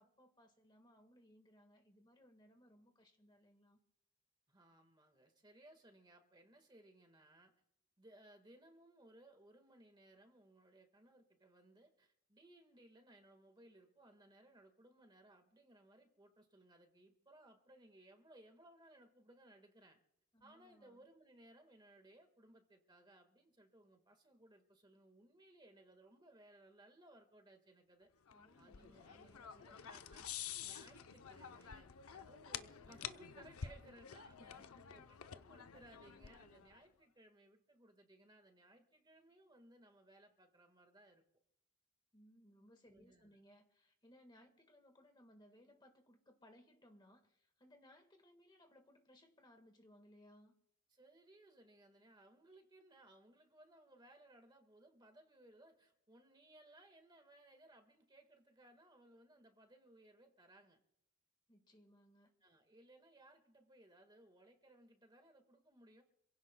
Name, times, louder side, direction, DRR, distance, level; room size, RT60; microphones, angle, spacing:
voice 1, 0.0-3.8 20.3-21.0 28.3-29.8 34.4-35.1 42.1-50.5 61.5-62.3, equal, 20° left, 5 dB, 1.5 m, -65 dB
voice 2, 4.5-7.5 8.0-20.0 20.4-28.1 28.6-29.4 29.6-30.3 30.6-34.6 34.9-41.2 42.9-43.3 50.9-60.8 62.4-66.0, right 1 dB, 20° right, 5 dB, 1.5 m, -64 dB
sound 1, 28.3-36.8, left 8 dB, 85° left, 0.6 m, -50 dB
27.0 x 16.0 x 2.2 m, 0.81 s
head